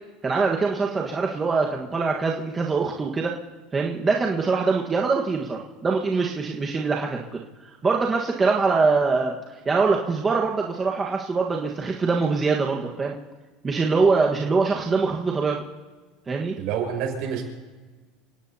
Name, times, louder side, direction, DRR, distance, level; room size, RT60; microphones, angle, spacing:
voice 1, 0.2-3.4 3.7-7.4 7.8-9.4 9.6-13.2 13.6-15.6 16.3-16.6, right 4 dB, 20° right, -1 dB, 1.5 m, -23 dB
voice 2, 16.6-17.4, right 7 dB, 60° right, 3 dB, 5.6 m, -27 dB
28.5 x 17.5 x 2.9 m, 1.3 s
supercardioid pair, 130°, 0 cm